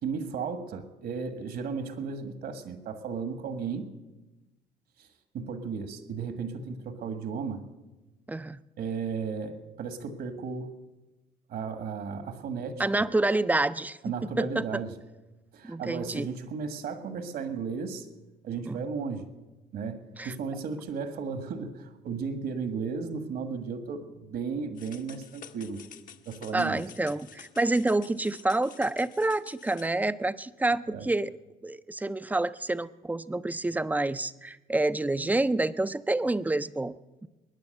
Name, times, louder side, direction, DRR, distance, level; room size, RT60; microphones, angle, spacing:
voice 1, 0.0-3.9 5.0-5.1 5.3-7.7 8.8-10.7 11.5-12.8 14.0-14.9 15.5-18.0 18.4-19.2 19.7-25.8 26.2-26.8 30.9-31.1, right 5 dB, 65° right, 9 dB, 1.7 m, -34 dB
voice 2, 8.3-8.6 12.8-14.8 15.6-16.3 18.7-18.8 20.2-20.3 26.5-31.3 31.6-37.3, right 2 dB, 10° right, 15 dB, 0.4 m, -28 dB
sound 1, 24.7-29.9, left 9 dB, 55° left, 0.9 m, -50 dB
21.0 x 9.8 x 6.6 m, 1.1 s
cardioid pair, 110°, 17 cm